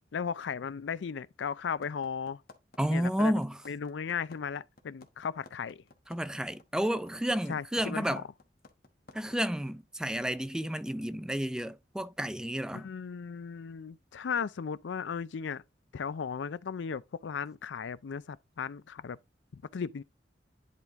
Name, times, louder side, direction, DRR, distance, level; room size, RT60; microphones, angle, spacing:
voice 1, 0.1-2.4 2.9-3.3 3.7-5.8 7.5-8.2 12.7-15.6 15.9-19.2 19.5-20.0, left 6 dB, 85° left, 0.4 m, -36 dB
sound 1, 1.8-9.6, left 3 dB, 55° left, 1.1 m, -53 dB
voice 2, 2.8-3.6 6.1-8.2 9.1-12.9, equal, 5° right, 0.3 m, -31 dB
10.5 x 3.5 x 3.6 m
head